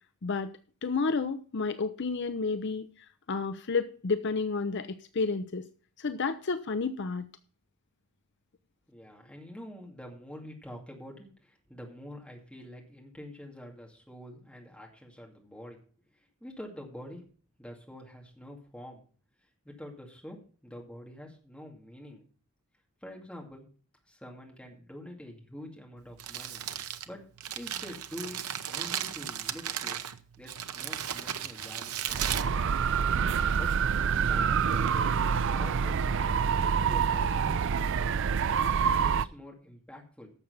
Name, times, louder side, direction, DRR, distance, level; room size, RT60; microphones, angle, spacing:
voice 1, 0.8-2.9 3.3-5.7 6.0-7.3, left 4 dB, 50° left, 10 dB, 0.6 m, -30 dB
voice 2, 8.9-15.8 16.1-17.3 17.6-19.0 19.6-22.2 23.0-23.7 24.1-26.6 27.1-27.2 27.5-30.0 30.4-32.8 33.6-37.3 38.8-40.3, equal, 5° left, 0 dB, 2.3 m, -46 dB
Crumpling crinkling, 26.0-33.3, right 10 dB, 85° right, 0.9 m, -36 dB
sound 1, 32.1-39.3, right 6 dB, 55° right, 0.4 m, -27 dB
11.5 x 7.2 x 5.4 m, 0.41 s
head